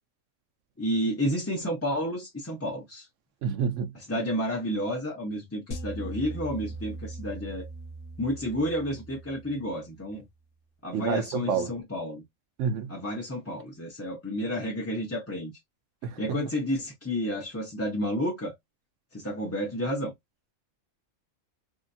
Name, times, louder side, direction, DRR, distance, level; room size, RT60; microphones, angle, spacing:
voice 1, 0.8-3.1 3.9-7.7 8.2-10.3 10.8-12.2 12.9-15.5 16.2-18.6 19.1-20.1, equal, 15° left, 0.7 m, -31 dB
voice 2, 3.4-3.9 10.9-11.7 12.6-12.9 16.0-16.4, right 6 dB, 70° right, 0.9 m, -28 dB
sound 1, 5.7-10.0, right 2 dB, 90° left, 1.2 m, -40 dB
3.3 x 2.8 x 2.6 m
omnidirectional pair, 1.4 m